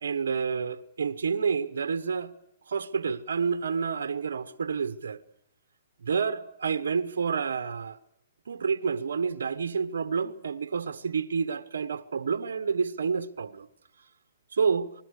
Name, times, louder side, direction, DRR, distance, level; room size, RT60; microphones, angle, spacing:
voice 1, 0.0-2.3 2.7-5.2 6.0-8.0 8.5-13.7 14.6-14.9, right 5 dB, 90° right, 1.2 m, -29 dB
27.5 x 20.5 x 6.6 m
hypercardioid pair, 150°, 0 cm